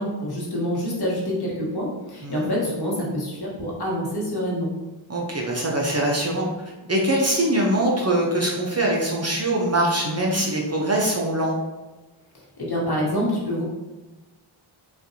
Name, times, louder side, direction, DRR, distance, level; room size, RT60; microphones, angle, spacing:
voice 1, 0.0-4.7 12.6-13.6, equal, 50° left, -4 dB, 1.3 m, -26 dB
voice 2, 2.2-2.5 5.1-6.5 6.9-11.6, right 1 dB, 30° right, -2 dB, 0.7 m, -23 dB
4.1 x 2.5 x 2.7 m, 1.1 s
wide cardioid pair, 70°, 49 cm